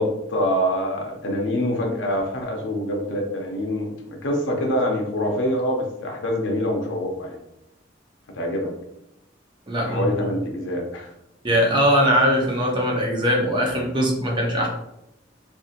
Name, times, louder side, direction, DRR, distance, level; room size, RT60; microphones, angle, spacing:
voice 1, 0.0-3.9 4.2-7.4 8.3-8.7 9.8-11.1, equal, 90° left, 1 dB, 0.6 m, -25 dB
voice 2, 9.7-10.1 11.4-14.7, equal, 25° right, 0 dB, 0.5 m, -21 dB
2.7 x 2.5 x 2.4 m, 0.84 s
head